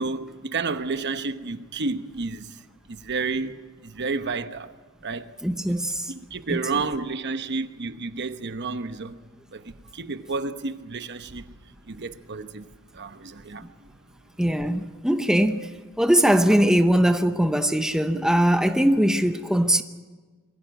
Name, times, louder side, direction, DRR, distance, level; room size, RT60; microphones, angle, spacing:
voice 1, 0.0-2.6 2.9-3.6 3.8-4.7 5.0-5.3 6.1-9.2 9.5-11.4 11.9-12.6 12.9-13.7, right 4 dB, 55° right, 1.0 m, -31 dB
voice 2, 5.4-6.1 6.5-6.6 14.4-19.8, equal, 5° right, 0.7 m, -21 dB
22.5 x 15.5 x 9.1 m
head